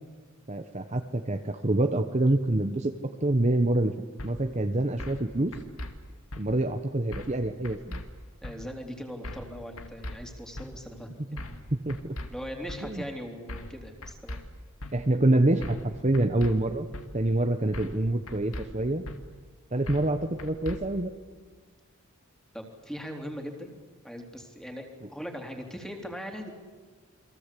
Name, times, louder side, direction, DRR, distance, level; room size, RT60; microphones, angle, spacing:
voice 1, 0.5-3.9 4.2-5.5 6.4-8.0 11.7-12.1 12.8-13.0 14.9-16.9 17.1-19.0 19.7-21.1, right 1 dB, 30° right, 6 dB, 1.0 m, -26 dB
sound 1, 4.2-4.3 5.0-5.2 5.5-5.9 6.3-6.4 7.1-7.4 7.6-8.0 8.4-8.6 9.2-9.5 9.8-10.2 10.6-10.7 11.4-11.6 11.9-12.3 12.7-12.8 13.5-13.8 14.0-14.4 14.8-14.9 15.6-15.9 16.1-16.5 16.9-17.1 17.7-18.0 18.3-18.7 19.1-19.2 19.9-20.1 20.4-20.8, left 1 dB, 70° left, 2.5 m, -38 dB
voice 2, 8.4-11.4 12.3-14.4 22.5-23.7 24.0-26.5, equal, 5° left, 3 dB, 3.3 m, -40 dB
29.5 x 22.5 x 8.4 m, 1.5 s
head